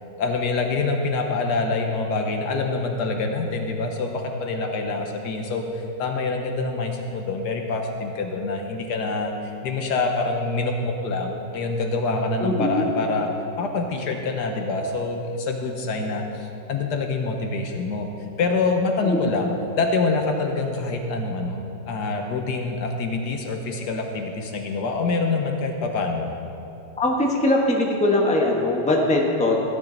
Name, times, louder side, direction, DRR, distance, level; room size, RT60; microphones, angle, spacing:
voice 1, 0.2-13.3 13.6-18.1 18.4-19.5 19.8-26.3, left 3 dB, 70° left, 3 dB, 1.4 m, -26 dB
voice 2, 12.4-12.9 19.0-19.2 27.0-29.6, left 1 dB, 5° left, -1 dB, 1.0 m, -21 dB
14.5 x 10.0 x 3.9 m, 2.9 s
omnidirectional pair, 1.9 m